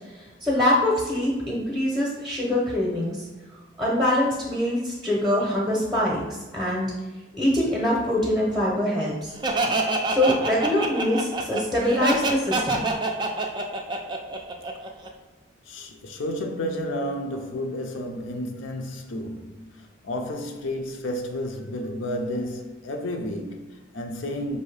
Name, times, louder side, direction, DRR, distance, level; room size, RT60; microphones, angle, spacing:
voice 1, 0.4-3.3 3.8-6.9 7.4-9.3 10.1-12.9, left 1 dB, ahead, 0.7 m, -24 dB
Laughter, 9.4-15.1, right 2 dB, 25° right, 0.4 m, -26 dB
voice 2, 15.7-24.6, left 1 dB, 80° left, 0.6 m, -31 dB
5.4 x 2.7 x 3.3 m
head